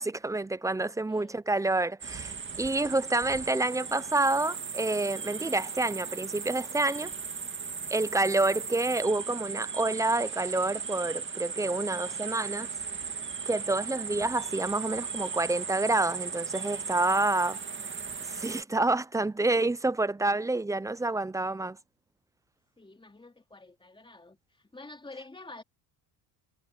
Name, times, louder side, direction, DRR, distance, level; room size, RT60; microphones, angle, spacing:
voice 1, 0.0-7.1 7.9-12.7 13.5-17.6 18.3-21.8, right 2 dB, 5° right, 0.5 m, -28 dB
voice 2, 0.8-1.4 16.8-17.0 17.5-17.6 22.8-25.6, left 2 dB, 10° left, 3.0 m, -49 dB
sound 1, 2.0-18.6, right 6 dB, 25° right, 2.0 m, -37 dB
cardioid pair, 110°, 44 cm